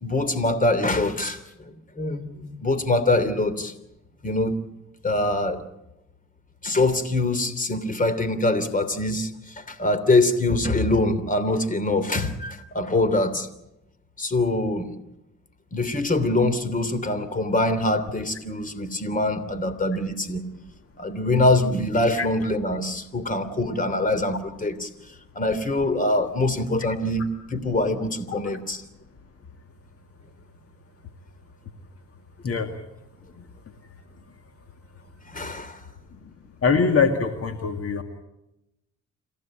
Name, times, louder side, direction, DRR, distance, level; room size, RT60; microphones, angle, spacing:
voice 1, 0.0-3.7 4.2-4.5 5.0-5.6 6.6-13.5 14.2-14.9 15.7-20.5 21.0-28.8 35.3-35.8, left 2 dB, 25° left, 13 dB, 3.0 m, -24 dB
voice 2, 33.4-33.7 36.1-36.4 36.6-38.0, left 5 dB, 50° left, 6 dB, 2.2 m, -24 dB
27.5 x 15.5 x 8.9 m, 0.91 s
cardioid pair, 90°, 30 cm